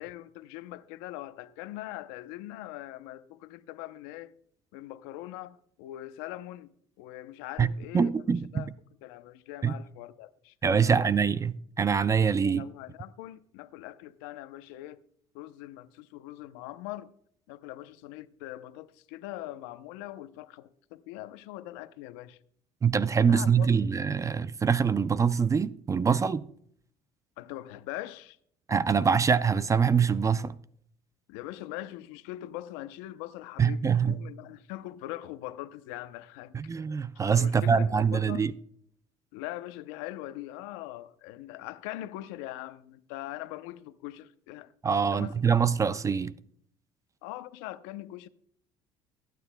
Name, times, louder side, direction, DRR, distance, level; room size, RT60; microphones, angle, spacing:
voice 1, 0.0-4.3 4.7-8.2 8.5-8.7 9.0-11.1 12.4-15.0 15.3-17.1 17.5-22.4 23.2-23.9 27.4-28.4 31.3-36.6 37.4-38.5 39.3-44.7 45.1-45.4 47.2-48.3, left 15 dB, 85° left, 0.7 m, -42 dB
voice 2, 7.9-8.6 9.6-9.7 10.6-12.6 22.8-26.5 28.7-30.5 33.6-34.2 36.5-38.5 44.8-46.3, right 6 dB, 25° right, 0.4 m, -24 dB
22.5 x 9.3 x 2.2 m
supercardioid pair, 95°, 13 cm